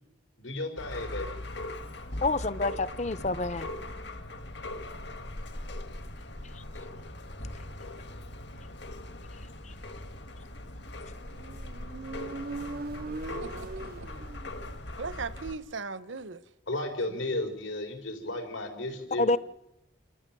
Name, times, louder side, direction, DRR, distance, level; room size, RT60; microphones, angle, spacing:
voice 1, 0.4-1.3 16.7-19.4, left 2 dB, 80° left, 4.8 m, -34 dB
pipe leak, 0.8-15.6, left 1 dB, 60° left, 1.9 m, -40 dB
voice 2, 2.2-3.7 6.5-6.6 9.6-9.7 19.2-19.4, left 3 dB, 35° left, 0.8 m, -28 dB
Motorcycle, 11.2-14.9, right 3 dB, 50° right, 0.7 m, -40 dB
voice 3, 13.4-14.1 15.0-16.4, right 4 dB, 80° right, 1.1 m, -38 dB
29.0 x 14.0 x 7.6 m
head